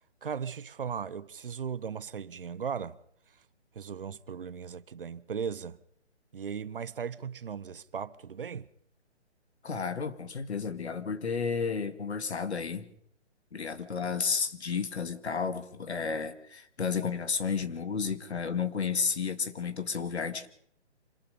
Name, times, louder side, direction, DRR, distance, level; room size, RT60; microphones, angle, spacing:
voice 1, 0.2-3.0 3.7-5.8 6.3-8.7, right 7 dB, 50° right, 0.8 m, -37 dB
voice 2, 9.6-12.9 13.5-20.5, left 5 dB, 65° left, 2.1 m, -32 dB
26.0 x 19.5 x 5.2 m
hypercardioid pair, 160°, 35 cm